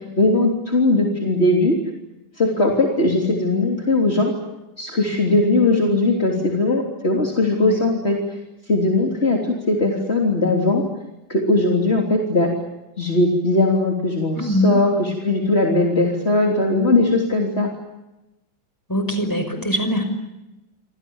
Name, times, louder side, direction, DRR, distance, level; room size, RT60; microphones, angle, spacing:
voice 1, 0.2-1.8 2.4-4.3 4.8-8.4 8.7-10.8 11.3-12.5 13.0-17.7, left 2 dB, 30° left, 0 dB, 3.7 m, -19 dB
voice 2, 14.3-14.7 18.9-20.0, left 1 dB, 10° left, 7 dB, 5.6 m, -22 dB
28.5 x 26.5 x 7.2 m, 0.99 s
omnidirectional pair, 2.1 m